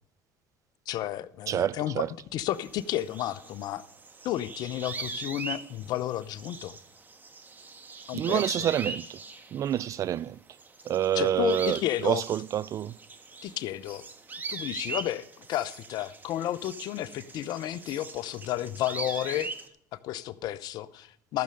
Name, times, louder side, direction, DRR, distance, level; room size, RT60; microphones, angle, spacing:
voice 1, 0.9-2.0 2.3-3.8 4.2-6.8 8.1-8.7 11.1-12.2 13.4-14.0 14.5-19.5 19.9-21.4, left 13 dB, 65° left, 0.7 m, -32 dB
voice 2, 1.5-2.1 8.1-9.2 9.5-10.4 10.9-13.0, right 10 dB, 45° right, 0.4 m, -28 dB
sound 1, 2.5-10.3 10.5-19.7, right 4 dB, 25° right, 1.4 m, -41 dB
13.5 x 6.8 x 6.5 m
supercardioid pair, 85°, 7 cm